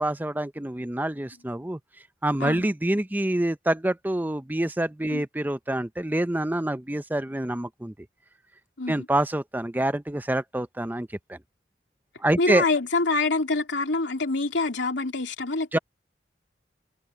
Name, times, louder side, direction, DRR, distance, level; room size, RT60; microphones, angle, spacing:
voice 1, 0.0-1.8 2.2-7.9 8.9-11.4 12.2-12.6 15.7-15.8, right 1 dB, 10° right, 0.6 m, -26 dB
voice 2, 12.4-15.8, left 3 dB, 85° left, 3.2 m, -26 dB
head